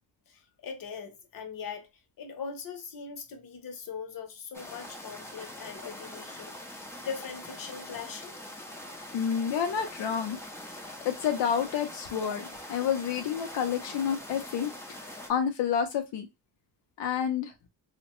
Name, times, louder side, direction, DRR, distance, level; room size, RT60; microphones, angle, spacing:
voice 1, 0.3-1.9 2.2-8.4, left 6 dB, 55° left, 0.8 m, -41 dB
sound 1, 4.5-15.3, left 1 dB, 5° left, 0.4 m, -43 dB
voice 2, 9.1-10.4 11.0-12.4 12.7-16.3 17.0-17.5, left 8 dB, 85° left, 0.6 m, -29 dB
2.8 x 2.1 x 2.9 m
cardioid pair, 105°, 42 cm